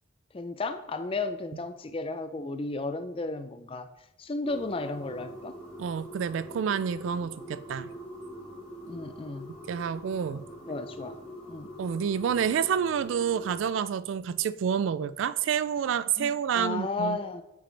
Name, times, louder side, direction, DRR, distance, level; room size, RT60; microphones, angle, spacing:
voice 1, 0.3-3.9 4.2-5.6 8.8-9.5 10.7-11.2 11.5-11.7 16.2-17.4, left 3 dB, 25° left, 0.4 m, -34 dB
sound 1, 4.5-13.6, equal, 5° left, 1.6 m, -44 dB
voice 2, 5.8-7.9 9.7-10.4 11.8-17.2, right 7 dB, 75° right, 0.3 m, -28 dB
8.5 x 6.0 x 3.3 m
head